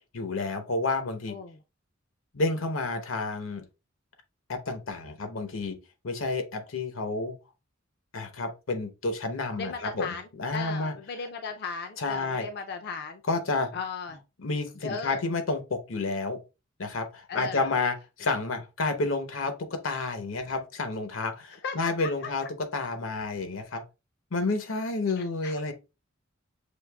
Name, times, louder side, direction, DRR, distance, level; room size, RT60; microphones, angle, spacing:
voice 1, 0.1-1.4 2.3-3.6 4.5-5.8 6.0-7.4 8.1-10.9 12.0-12.5 13.3-13.8 14.4-16.4 16.8-23.8 24.3-25.7, left 3 dB, 85° left, 0.8 m, -30 dB
voice 2, 1.3-1.6 9.6-13.2 13.7-14.2 14.8-15.2 17.3-17.7 21.6-22.1 25.2-25.6, left 5 dB, 55° left, 0.4 m, -36 dB
6.4 x 2.8 x 2.2 m
head